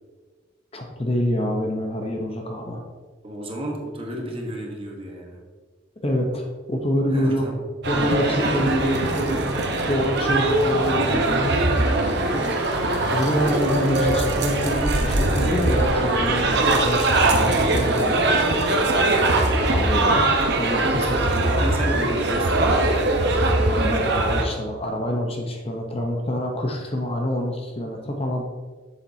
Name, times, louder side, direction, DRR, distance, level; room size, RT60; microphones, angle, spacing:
voice 1, 0.7-2.8 6.0-7.5 7.9-9.6 9.9-11.7 13.1-18.2 19.7-20.3 20.6-21.3 23.8-28.5, equal, 30° left, 2 dB, 0.8 m, -26 dB
voice 2, 3.2-5.4 7.1-7.6 12.2-12.7 13.5-13.6 19.9-20.2 20.9-23.5, equal, 30° right, 0 dB, 1.2 m, -33 dB
sound 1, 7.8-24.5, right 2 dB, 60° right, 0.9 m, -21 dB
7.3 x 7.2 x 2.7 m, 1.4 s
head